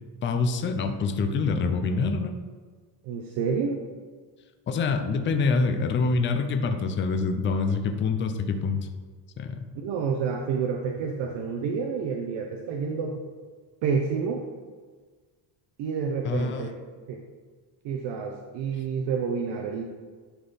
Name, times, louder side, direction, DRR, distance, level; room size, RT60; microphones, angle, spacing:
voice 1, 0.2-2.3 4.7-8.8 9.4-9.6 16.2-16.7, left 4 dB, 25° left, 6 dB, 0.5 m, -26 dB
voice 2, 3.0-3.8 9.7-13.2 13.8-14.4 15.8-16.7 17.1-17.2 17.8-19.8, right 5 dB, 75° right, 2 dB, 0.8 m, -29 dB
11.0 x 3.9 x 4.1 m, 1.5 s
cardioid pair, 145°, 44 cm